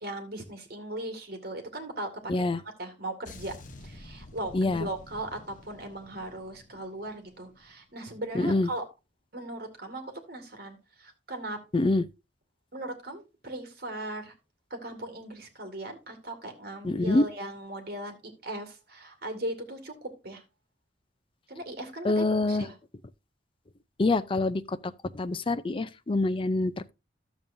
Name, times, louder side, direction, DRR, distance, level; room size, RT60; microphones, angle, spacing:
voice 1, 0.0-3.6 3.8-8.8 9.3-11.6 12.7-14.3 14.7-20.4 21.5-22.8, right 1 dB, 60° right, 2.0 m, -38 dB
voice 2, 2.3-2.6 4.5-4.9 8.3-8.7 11.7-12.0 16.8-17.3 22.0-22.7 24.0-26.9, left 2 dB, 30° left, 0.5 m, -26 dB
sound 1, 3.2-7.8 8.1-8.4, left 2 dB, 45° left, 1.0 m, -49 dB
12.5 x 7.1 x 2.6 m
head